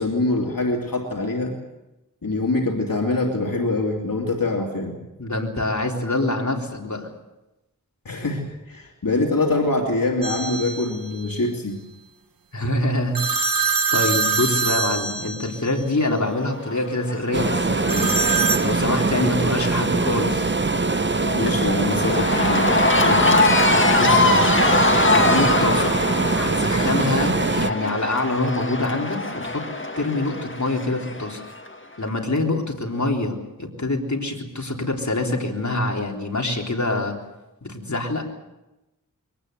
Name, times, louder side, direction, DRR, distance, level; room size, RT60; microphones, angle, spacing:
voice 1, 0.0-1.5 2.2-4.9 8.0-11.8 21.3-23.6, left 2 dB, 80° left, 0 dB, 2.9 m, -24 dB
voice 2, 5.2-7.1 12.5-13.2 13.9-18.1 18.6-20.5 23.9-24.6 24.9-26.0 26.4-29.6 30.0-31.4 32.0-37.2 37.6-38.3, left 2 dB, 55° left, 1 dB, 3.8 m, -25 dB
sound 1, 10.2-11.0 13.1-15.8 17.9-18.7, right 5 dB, 90° right, 1.1 m, -23 dB
Cheering / Crowd, 16.4-31.7, left 2 dB, 35° left, 2.0 m, -23 dB
sound 2, 17.3-27.7, right 3 dB, 35° right, 0.8 m, -23 dB
23.0 x 18.5 x 8.1 m, 0.98 s
wide cardioid pair, 45°, 33 cm